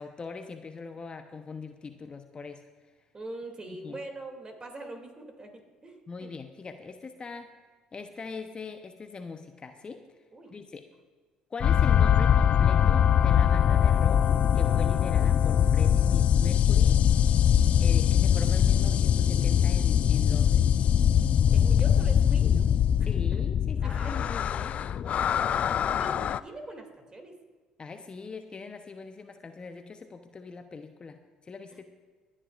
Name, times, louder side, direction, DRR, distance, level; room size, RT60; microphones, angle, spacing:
voice 1, 0.0-2.6 3.7-4.0 6.1-7.5 7.9-10.0 10.5-10.8 11.5-14.2 14.5-17.0 17.8-20.6 23.1-24.7 27.8-31.2 31.5-31.9, left 4 dB, 35° left, 7 dB, 0.8 m, -41 dB
voice 2, 3.1-6.3 10.3-10.5 21.1-21.2 21.5-22.7 23.0-23.4 23.8-24.3 25.2-25.3 25.9-27.4 31.7-31.8, right 2 dB, 25° right, 4 dB, 2.6 m, -43 dB
sound 1, 11.6-26.4, left 9 dB, 50° left, 0.3 m, -22 dB
26.5 x 9.9 x 2.5 m, 1.5 s
hypercardioid pair, 60°, 3 cm